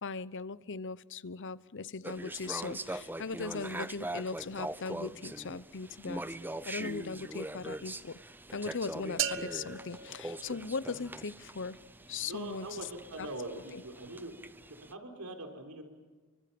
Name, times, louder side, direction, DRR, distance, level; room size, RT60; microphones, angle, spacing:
voice 1, 0.0-6.2 6.6-8.1 8.5-11.8 12.1-12.8 13.2-13.3 13.7-13.8, left 4 dB, 55° left, 0.9 m, -39 dB
sound 1, 2.0-14.9, right 1 dB, 10° right, 0.7 m, -42 dB
sound 2, 9.2-11.2, right 8 dB, 60° right, 1.2 m, -37 dB
voice 2, 12.2-14.3 14.6-15.8, right 2 dB, 80° right, 4.2 m, -42 dB
29.0 x 24.5 x 7.0 m
head